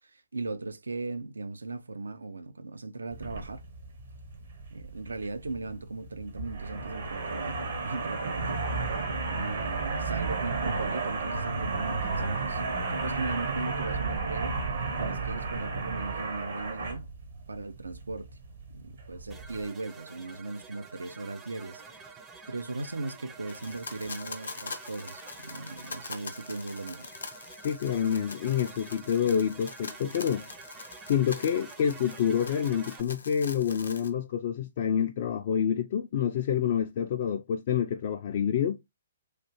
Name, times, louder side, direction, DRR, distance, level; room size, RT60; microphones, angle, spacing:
voice 1, 0.1-3.6 4.7-8.6 9.2-12.6 12.9-14.6 15.0-17.1 17.5-18.3 18.7-21.8 22.5-27.1, right 3 dB, 80° right, 0.4 m, -38 dB
sound 1, 3.1-19.7, right 4 dB, 60° right, 0.8 m, -33 dB
sound 2, 19.3-33.0, right 5 dB, 15° right, 0.5 m, -48 dB
sound 3, 23.5-34.1, left 4 dB, 75° left, 0.7 m, -44 dB
voice 2, 27.6-30.5 31.1-38.8, left 8 dB, 45° left, 0.3 m, -27 dB
3.2 x 2.3 x 3.0 m
figure-of-eight pair, 130°, 0 cm